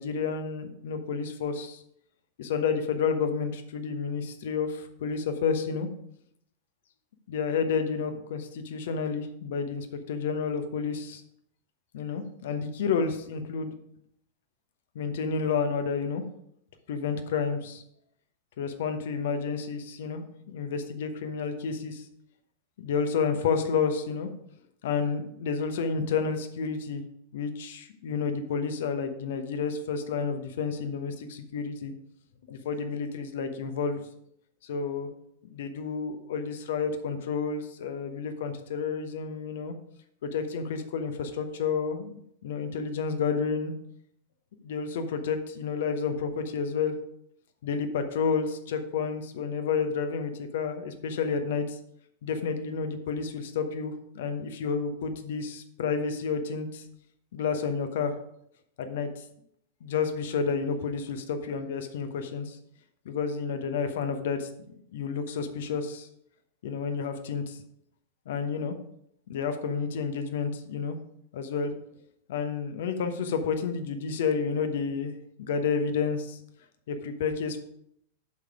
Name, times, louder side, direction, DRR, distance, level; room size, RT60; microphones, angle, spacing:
voice 1, 0.0-1.8 2.4-5.9 7.3-11.2 11.9-13.7 14.9-16.2 16.9-17.8 18.6-22.0 22.8-24.3 24.8-27.0 27.3-31.9 32.5-34.1 34.6-35.1 35.5-39.7 40.2-43.7 44.6-46.9 47.6-51.8 52.2-56.8 57.3-58.1 58.8-59.2 59.8-62.6 63.0-64.5 64.9-66.1 66.6-67.6 68.3-68.7 69.3-71.0 71.3-71.7 72.3-76.4 76.9-77.6, left 5 dB, 55° left, 7 dB, 1.0 m, -30 dB
8.5 x 6.7 x 4.9 m, 0.74 s
figure-of-eight pair, 90°, 0 cm